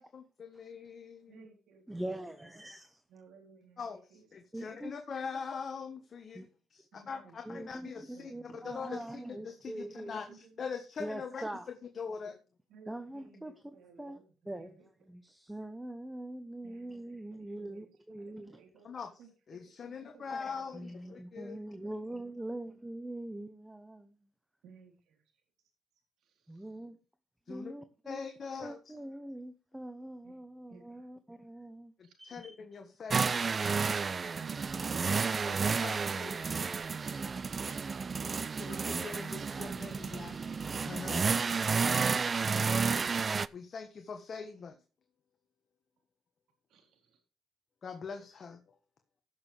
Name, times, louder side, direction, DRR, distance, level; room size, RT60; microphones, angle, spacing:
voice 1, 0.0-1.4 3.8-6.4 6.7-12.3 18.8-19.1 19.5-21.6 27.5-27.7 28.0-29.0 32.0-33.5 35.5-36.6 38.6-41.3 43.5-44.8 47.8-48.6, left 5 dB, 45° left, 1.4 m, -43 dB
voice 2, 1.3-2.5 3.1-3.8 4.1-4.3 6.9-7.6 7.9-9.1 9.8-10.7 12.7-14.9 16.6-17.9 18.2-21.1 21.8-22.1 22.3-22.5 24.6-25.2 26.2-26.7 30.2-30.4 30.7-31.1 32.0-32.1 46.7-47.2, right 5 dB, 80° right, 3.8 m, -60 dB
voice 3, 1.9-3.0 4.5-4.9 6.3-6.5 7.5-10.2 11.0-11.7 12.9-13.5 14.0-14.2 14.5-14.7 15.1-18.6 20.7-24.2 26.5-27.0 27.5-28.2 28.6-31.9 32.2-32.6, right 1 dB, 10° right, 0.9 m, -43 dB
sound 1, 33.1-43.5, right 5 dB, 35° right, 0.4 m, -31 dB
16.5 x 6.7 x 3.4 m
cardioid pair, 90°, 0 cm